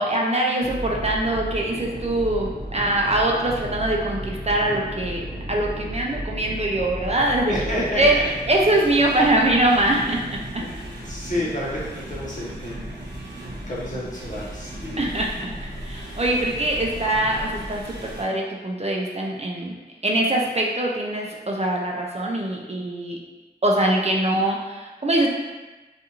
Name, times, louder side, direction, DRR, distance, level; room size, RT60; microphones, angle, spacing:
voice 1, 0.0-8.2 8.5-10.6 15.0-15.3 15.6-19.7 20.0-23.2 23.6-25.3, right 1 dB, 40° right, -1 dB, 0.4 m, -23 dB
sound 1, 0.6-18.2, right 1 dB, 85° right, 0.7 m, -34 dB
voice 2, 7.5-8.3 9.0-9.1 10.0-10.1 10.6-15.1, left 1 dB, 45° left, -7 dB, 0.8 m, -31 dB
2.5 x 2.4 x 2.8 m, 1.2 s
wide cardioid pair, 60°, 18 cm